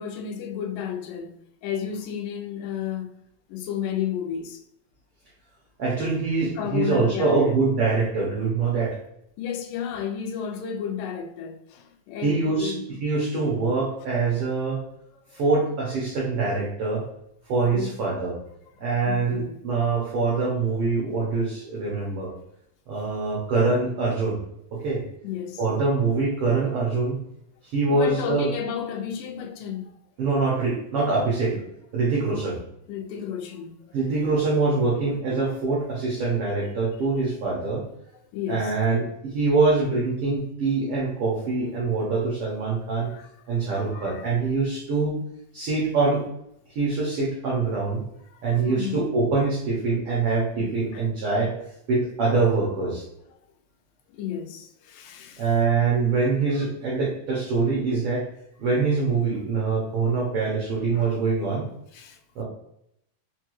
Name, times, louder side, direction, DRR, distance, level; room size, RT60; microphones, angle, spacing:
voice 1, 0.0-3.2 3.5-4.6 6.6-7.6 9.4-12.8 17.7-17.9 19.1-19.6 25.2-25.6 27.9-30.0 32.3-32.6 32.9-33.7 38.3-38.7 43.1-44.3 48.3-49.0 50.6-51.0 54.1-55.5 60.9-61.2 61.9-62.2, left 8 dB, 85° left, 2.2 m, -33 dB
voice 2, 5.8-9.0 12.2-12.7 13.0-14.8 15.3-17.0 17.5-18.4 18.8-22.3 22.9-24.4 24.7-25.0 25.6-27.2 27.6-28.5 30.2-31.6 31.9-32.6 33.9-37.9 38.5-43.1 43.5-45.1 45.5-46.2 46.7-48.0 48.4-51.5 51.9-53.0 55.4-58.2 58.6-61.7 62.3-62.4, right 4 dB, 75° right, 1.3 m, -24 dB
5.2 x 2.3 x 3.0 m
omnidirectional pair, 3.8 m